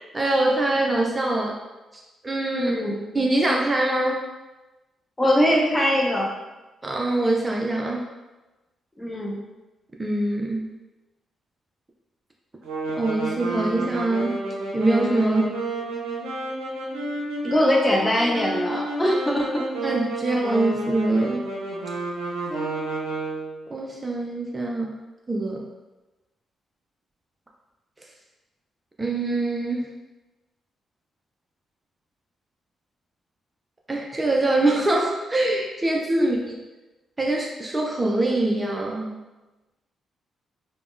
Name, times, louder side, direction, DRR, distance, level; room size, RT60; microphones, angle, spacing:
voice 1, 0.1-1.6 2.2-2.7 3.1-4.2 6.8-8.0 10.0-10.7 13.0-14.4 14.7-15.5 19.8-21.5 22.5-22.7 23.7-24.9 25.3-25.7 29.0-29.9 33.9-36.4 37.2-39.1, right 2 dB, 25° right, -1 dB, 0.4 m, -24 dB
voice 2, 2.6-2.9 5.2-6.3 9.0-9.4 15.2-15.6 17.4-19.6 36.1-36.3, equal, 20° left, -2 dB, 0.8 m, -22 dB
sound 1, 12.6-23.6, right 1 dB, 80° right, 0.5 m, -30 dB
3.4 x 2.1 x 2.5 m, 1.1 s
hypercardioid pair, 45°, 0 cm